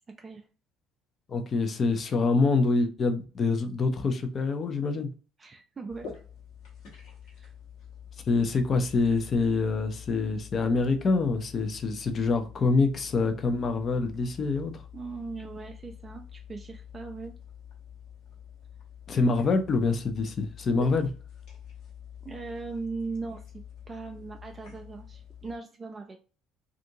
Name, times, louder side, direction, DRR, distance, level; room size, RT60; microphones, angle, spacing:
voice 1, 1.3-5.1 8.3-14.7 19.1-21.1, left 3 dB, 40° left, 0.6 m, -26 dB
voice 2, 5.4-6.1 7.4-7.5 14.9-17.3 22.2-26.2, right 4 dB, 30° right, 0.4 m, -39 dB
sound 1, 5.9-25.6, left 7 dB, 60° left, 1.1 m, -46 dB
2.5 x 2.5 x 2.7 m
figure-of-eight pair, 55°, 0 cm